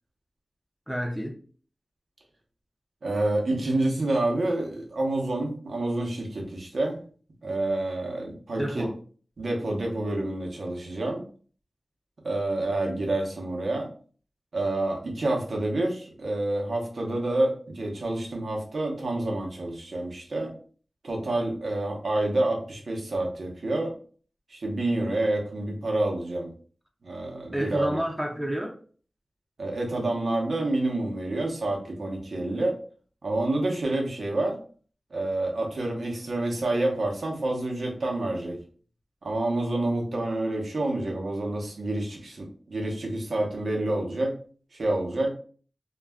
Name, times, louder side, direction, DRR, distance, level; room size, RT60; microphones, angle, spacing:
voice 1, 0.9-1.4 8.6-8.9 27.5-28.8, equal, 5° right, 0.5 m, -29 dB
voice 2, 3.0-7.0 7.4-8.9 9.4-11.2 12.2-13.9 14.5-20.5 21.0-23.9 24.5-26.5 27.0-28.0 29.6-32.8 33.2-34.6 35.1-38.6 39.2-44.4 44.7-45.3, right 2 dB, 75° right, 0.8 m, -28 dB
2.3 x 2.1 x 3.4 m
cardioid pair, 50°, 0 cm